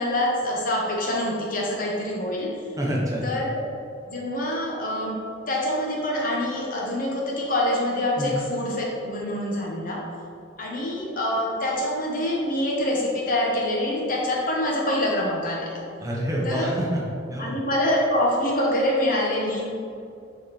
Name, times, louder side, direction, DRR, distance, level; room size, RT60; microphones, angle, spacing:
voice 1, 0.0-2.6 3.2-3.6 4.1-5.2 5.5-10.0 10.6-15.8 16.4-16.7 17.4-19.7, left 1 dB, 45° left, -3 dB, 1.2 m, -25 dB
voice 2, 2.8-3.2 8.2-8.4 16.0-17.0 17.3-17.5, equal, 15° right, -4 dB, 1.0 m, -27 dB
7.1 x 4.1 x 4.1 m, 2.5 s
head